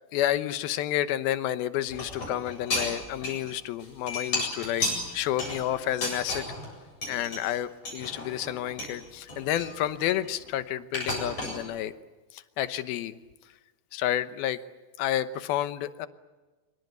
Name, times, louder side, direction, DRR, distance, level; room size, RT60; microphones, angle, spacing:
voice 1, 0.1-4.9 5.1-6.4 7.1-11.9 12.3-13.2 13.9-14.6 15.0-16.1, left 12 dB, 80° left, 12 dB, 2.9 m, -30 dB
sound 1, 1.9-3.5 3.8-6.7 7.0-7.4 7.8-8.9 9.3-10.5 10.9-11.6, left 2 dB, 40° left, 9.1 m, -33 dB
26.0 x 24.0 x 8.1 m, 1.2 s
omnidirectional pair, 4.3 m